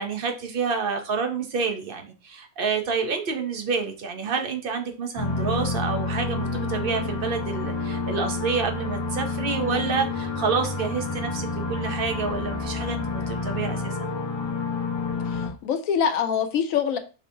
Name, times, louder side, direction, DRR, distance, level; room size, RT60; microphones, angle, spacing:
voice 1, 0.0-14.1, right 5 dB, 55° right, 0.6 m, -28 dB
sound 1, 5.2-15.5, left 3 dB, 40° left, 0.4 m, -29 dB
voice 2, 15.3-17.0, left 8 dB, 70° left, 1.0 m, -24 dB
5.3 x 2.9 x 2.6 m
omnidirectional pair, 1.5 m